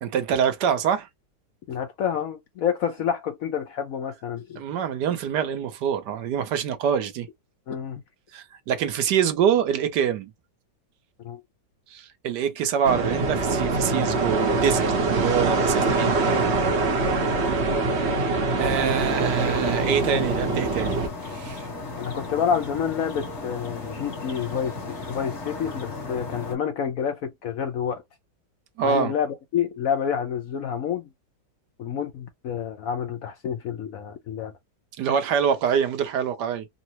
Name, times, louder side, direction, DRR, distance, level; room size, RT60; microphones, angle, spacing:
voice 1, 0.0-1.1 4.6-7.3 8.3-10.3 11.9-16.4 18.6-21.7 28.8-29.1 35.0-36.7, right 8 dB, 75° right, 1.2 m, -25 dB
voice 2, 1.7-4.8 7.7-8.0 11.2-11.4 16.9-17.1 22.0-28.0 28.8-31.1 31.8-34.5, left 8 dB, 65° left, 0.9 m, -28 dB
sound 1, 12.8-21.1, right 3 dB, 45° right, 1.0 m, -24 dB
sound 2, 18.6-26.6, left 3 dB, 40° left, 1.5 m, -35 dB
3.8 x 2.0 x 2.8 m
omnidirectional pair, 2.0 m